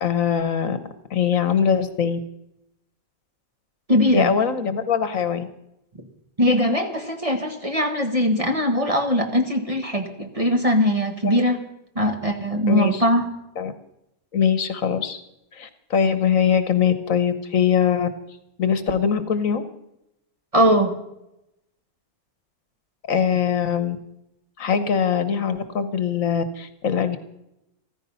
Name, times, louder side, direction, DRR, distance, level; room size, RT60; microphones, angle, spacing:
voice 1, 0.0-0.8 1.1-2.2 4.1-5.5 11.2-11.4 12.7-13.0 13.6-13.7 14.3-15.2 15.5-18.1 18.6-19.6 23.1-24.0 24.6-27.2, left 7 dB, 65° left, 11 dB, 1.4 m, -22 dB
voice 2, 3.9-4.3 6.4-11.6 11.9-13.3 20.5-20.9, equal, 25° right, 4 dB, 1.6 m, -21 dB
14.5 x 14.5 x 5.6 m, 0.83 s
omnidirectional pair, 1.6 m